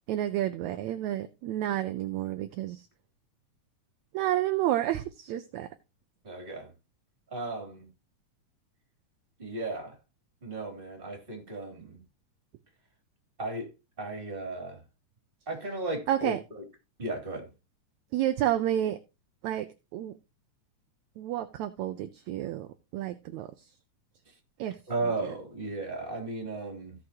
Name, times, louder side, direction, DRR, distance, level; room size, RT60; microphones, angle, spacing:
voice 1, 0.1-2.8 4.1-5.7 16.1-16.4 18.1-19.0 19.4-19.7 19.9-20.1 21.2-23.5 24.6-24.8 25.0-25.3, right 12 dB, 75° right, 1.8 m, -30 dB
voice 2, 6.2-6.7 7.3-7.9 9.4-9.9 10.4-12.0 13.4-13.7 14.0-14.8 15.5-16.6 17.0-17.5 24.9-26.9, right 2 dB, 15° right, 2.9 m, -35 dB
16.5 x 6.4 x 2.9 m
omnidirectional pair, 3.7 m